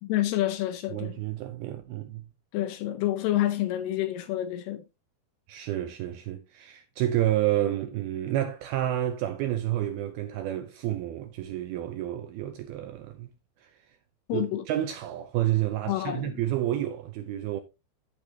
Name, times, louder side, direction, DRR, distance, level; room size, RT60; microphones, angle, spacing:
voice 1, 0.0-1.2 2.5-4.8 14.3-14.7 15.9-16.4, left 13 dB, 80° left, 2.5 m, -28 dB
voice 2, 0.9-2.2 5.5-13.3 13.6-13.8 14.3-17.6, right 13 dB, 80° right, 2.2 m, -30 dB
14.0 x 5.0 x 2.8 m
omnidirectional pair, 5.1 m